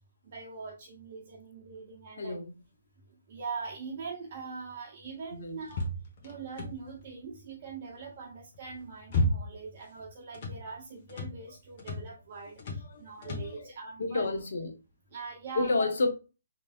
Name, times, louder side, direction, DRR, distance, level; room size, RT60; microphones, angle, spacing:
voice 1, 0.2-2.4 3.1-5.8 6.2-14.2 15.1-15.9, right 5 dB, 45° right, 0.8 m, -42 dB
voice 2, 2.2-2.5 5.4-5.6 12.9-13.7 14.0-14.7 15.6-16.1, left 3 dB, 65° left, 0.8 m, -30 dB
sound 1, 5.7-7.0 8.5-9.7 10.0-10.6 11.1-11.4 11.8-12.1 12.6-12.9 13.2-13.6, left 1 dB, 45° left, 1.0 m, -32 dB
3.3 x 3.0 x 2.5 m
figure-of-eight pair, 140°, 0 cm